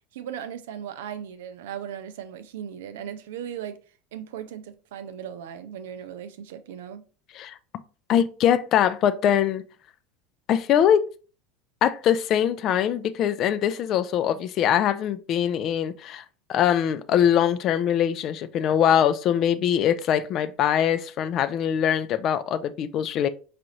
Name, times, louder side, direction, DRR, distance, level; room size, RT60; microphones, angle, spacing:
voice 1, 0.1-3.8 4.1-7.0, right 9 dB, 70° right, 0.4 m, -37 dB
voice 2, 8.1-9.6 10.5-11.1 11.8-16.2 16.5-23.3, left 9 dB, 45° left, 0.3 m, -22 dB
4.8 x 2.5 x 2.9 m
hypercardioid pair, 75°, 0 cm